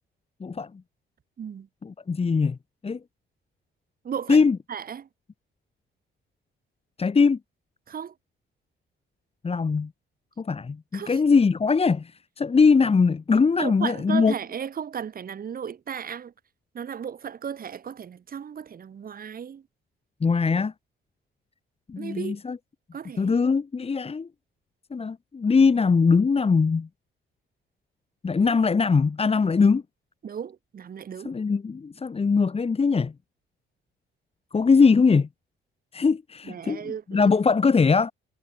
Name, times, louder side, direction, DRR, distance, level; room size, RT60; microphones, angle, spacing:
voice 1, 1.8-2.6 2.8-3.0 4.3-4.6 7.0-7.4 9.4-9.9 10.4-14.3 20.2-20.7 21.9-22.6 23.2-24.3 24.9-26.9 28.2-29.8 31.2-33.1 34.5-35.3 35.9-38.1, left 5 dB, 30° left, 1.7 m, -21 dB
voice 2, 4.0-4.4 4.7-5.1 7.9-8.1 10.9-11.2 13.6-16.3 16.7-19.6 22.0-22.4 22.9-23.4 30.2-31.3 36.4-37.3, right 8 dB, 45° right, 1.8 m, -35 dB
cardioid pair, 90°, 20 cm